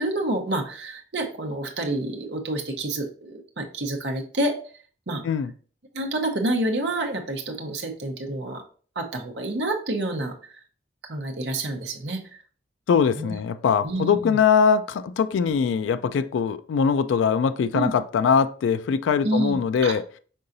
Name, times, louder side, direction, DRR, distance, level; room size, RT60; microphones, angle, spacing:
voice 1, 0.0-4.5 5.1-5.2 5.9-8.6 9.0-10.3 11.1-12.2 13.2-13.3 13.8-14.4 17.7-17.9 19.2-19.9, right 1 dB, 65° right, 0.8 m, -28 dB
voice 2, 12.9-20.0, left 6 dB, 85° left, 0.3 m, -22 dB
5.4 x 3.8 x 2.6 m
head